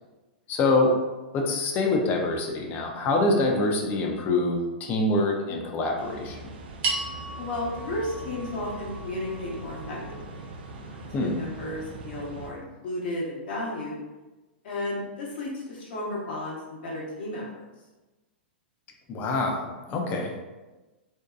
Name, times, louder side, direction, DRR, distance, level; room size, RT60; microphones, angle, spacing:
voice 1, 0.5-0.9 1.3-6.4 11.1-11.4 19.1-20.3, left 2 dB, 30° left, 1 dB, 0.5 m, -25 dB
sound 1, 6.0-12.5, right 2 dB, 65° right, 0.4 m, -41 dB
sound 2, 6.8-11.3, right 3 dB, 35° right, 0.8 m, -36 dB
voice 2, 7.4-10.0 10.3-10.4 10.8-14.0 14.6-17.4, left 1 dB, 60° left, -3 dB, 0.9 m, -33 dB
2.6 x 2.1 x 2.4 m, 1.1 s
hypercardioid pair, 115°, 6 cm